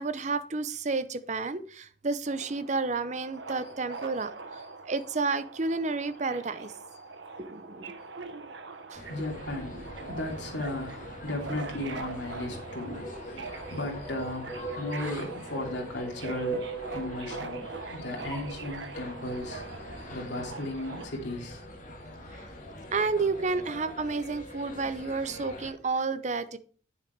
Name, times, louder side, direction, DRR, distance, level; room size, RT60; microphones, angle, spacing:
voice 1, 0.0-6.7 7.4-7.9 8.9-9.0 22.3-22.4 22.9-26.6, right 3 dB, 40° right, 13 dB, 0.6 m, -31 dB
Subway metro underground, 2.3-21.1, right 4 dB, 70° right, 0.9 m, -43 dB
sound 1, 8.9-25.7, left 1 dB, 45° left, 2.1 m, -45 dB
voice 2, 9.1-16.6 16.9-17.6 17.9-19.6 20.1-21.6, left 1 dB, 75° left, 0 dB, 2.9 m, -35 dB
sound 2, 12.9-18.6, right 3 dB, 15° left, 4.0 m, -40 dB
8.8 x 7.2 x 4.6 m, 0.43 s
head